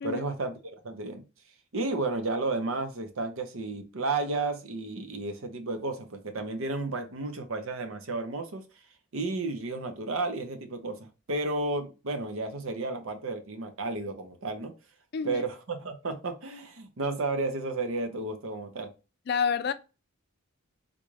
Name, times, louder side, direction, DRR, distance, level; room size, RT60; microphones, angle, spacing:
voice 1, 0.0-1.2 1.7-8.6 9.1-11.0 11.3-14.7 15.2-18.9, right 3 dB, 75° right, 0.7 m, -32 dB
voice 2, 15.1-15.4 19.3-19.7, left 6 dB, 50° left, 0.3 m, -28 dB
3.7 x 2.4 x 3.1 m
head